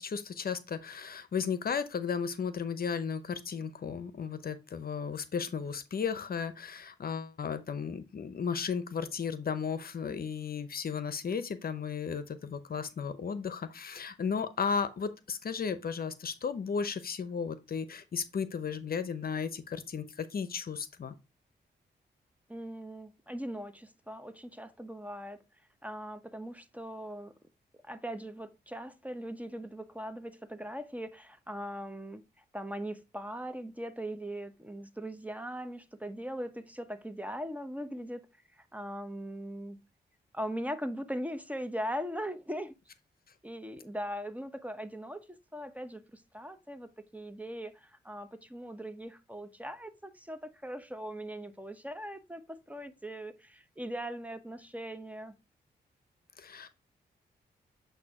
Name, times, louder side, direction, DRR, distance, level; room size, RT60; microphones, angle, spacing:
voice 1, 0.0-21.1 56.4-56.7, left 6 dB, 55° left, 0.7 m, -34 dB
voice 2, 22.5-25.4 25.8-27.4 27.8-38.2 38.5-39.8 40.3-42.8 43.4-45.2 45.5-55.3, equal, 10° right, 0.8 m, -40 dB
8.0 x 2.7 x 4.8 m
cardioid pair, 50°, 18 cm